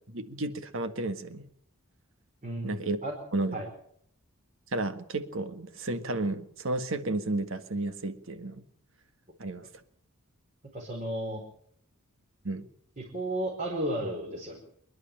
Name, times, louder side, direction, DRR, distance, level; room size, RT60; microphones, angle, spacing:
voice 1, 0.1-1.4 2.6-3.0 3.3-3.6 4.7-8.6 9.4-9.7 12.4-12.7, right 2 dB, 60° right, 9 dB, 1.7 m, -32 dB
voice 2, 2.4-3.1 3.5-3.7 10.7-11.4 13.0-14.6, right 1 dB, 35° right, 0 dB, 4.9 m, -33 dB
27.0 x 11.5 x 9.0 m, 0.67 s
head